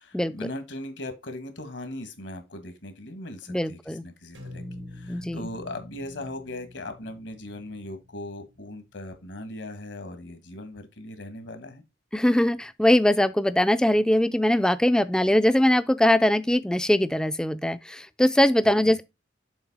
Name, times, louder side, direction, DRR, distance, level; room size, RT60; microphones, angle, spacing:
voice 1, 0.0-4.6 4.9-11.8 15.3-15.4 18.8-19.0, left 1 dB, 75° left, 1.6 m, -39 dB
voice 2, 3.5-4.0 5.1-5.4 12.1-19.0, left 1 dB, 5° left, 0.3 m, -21 dB
sound 1, 4.3-8.6, left 1 dB, 85° right, 3.6 m, -44 dB
7.2 x 3.2 x 6.0 m
head